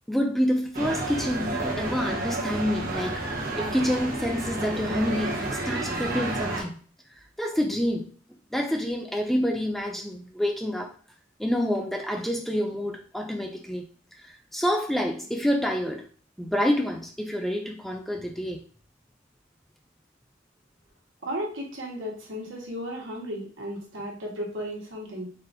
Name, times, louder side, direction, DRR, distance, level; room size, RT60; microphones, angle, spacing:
voice 1, 0.1-6.8 7.4-8.1 8.5-10.9 11.4-13.8 14.2-16.0 16.4-18.6, equal, ahead, 2 dB, 0.4 m, -28 dB
sound 1, 0.7-6.6, right 2 dB, 50° right, 1.1 m, -30 dB
voice 2, 21.2-25.3, equal, 75° right, -1 dB, 1.4 m, -34 dB
4.1 x 3.9 x 2.6 m, 0.42 s
head